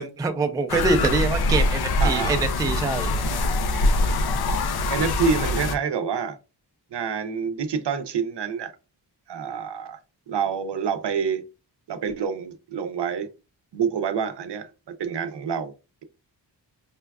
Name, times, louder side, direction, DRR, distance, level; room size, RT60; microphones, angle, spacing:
voice 1, 0.0-3.4, right 3 dB, 10° right, 0.3 m, -25 dB
sound 1, 0.7-5.8, left 2 dB, 60° left, 0.5 m, -23 dB
voice 2, 2.0-2.4 4.9-6.4 6.9-8.7 9.3-10.0 10.3-11.4 11.9-13.3 13.7-15.7, right 6 dB, 70° right, 0.6 m, -27 dB
5.0 x 2.3 x 2.2 m
wide cardioid pair, 150°, 43 cm